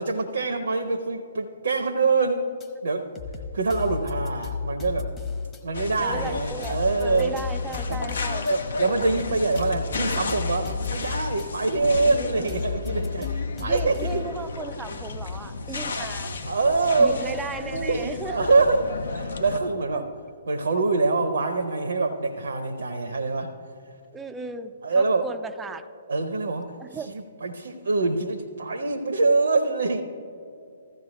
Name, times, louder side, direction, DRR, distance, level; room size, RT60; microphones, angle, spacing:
voice 1, 0.0-3.1 3.5-5.1 5.6-7.4 7.9-8.0 8.5-14.3 15.9-16.1 16.4-20.1 20.5-23.5 24.8-25.3 26.1-26.7 27.1-30.0, right 3 dB, 65° right, 6 dB, 0.7 m, -25 dB
sound 1, 2.6-2.7 3.2-5.6 6.1-8.5 9.0-11.5 11.9-14.3, left 5 dB, 15° left, 1.1 m, -33 dB
sound 2, 5.7-19.6, left 3 dB, 65° left, 0.8 m, -34 dB
voice 2, 6.0-8.5 12.1-12.5 13.6-16.3 17.0-18.5 19.9-20.1 24.1-25.9 26.8-27.1, right 4 dB, 10° right, 9 dB, 0.4 m, -36 dB
15.5 x 14.0 x 2.3 m, 2.5 s
figure-of-eight pair, 120°, 0 cm